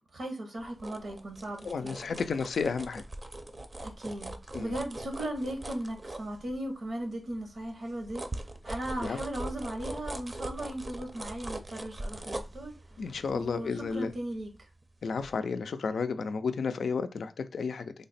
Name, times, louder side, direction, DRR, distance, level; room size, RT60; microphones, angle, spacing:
voice 1, 0.0-2.0 3.8-12.7 13.3-14.5, right 1 dB, 80° right, 0.8 m, -37 dB
sound 1, 0.6-6.9 7.3-14.8 15.2-15.3, right 1 dB, 40° right, 0.5 m, -41 dB
voice 2, 1.6-3.0 4.5-4.7 9.0-9.2 13.0-14.1 15.0-17.9, left 5 dB, 85° left, 0.3 m, -32 dB
3.2 x 2.0 x 4.1 m
cardioid pair, 50°, 0 cm